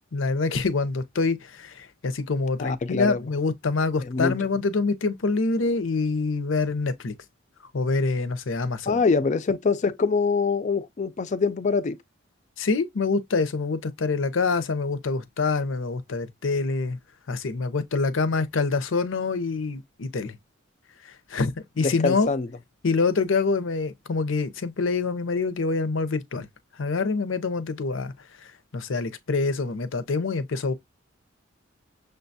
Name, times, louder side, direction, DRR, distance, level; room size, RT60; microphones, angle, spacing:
voice 1, 0.1-7.1 7.7-9.0 12.6-17.0 17.3-20.4 21.0-22.3 22.8-26.5 26.8-28.1 28.4-30.7, left 4 dB, 80° left, 0.6 m, -26 dB
voice 2, 2.6-3.2 4.0-4.3 8.9-12.0 21.8-22.5, left 4 dB, 40° left, 0.4 m, -24 dB
6.5 x 2.3 x 2.6 m
head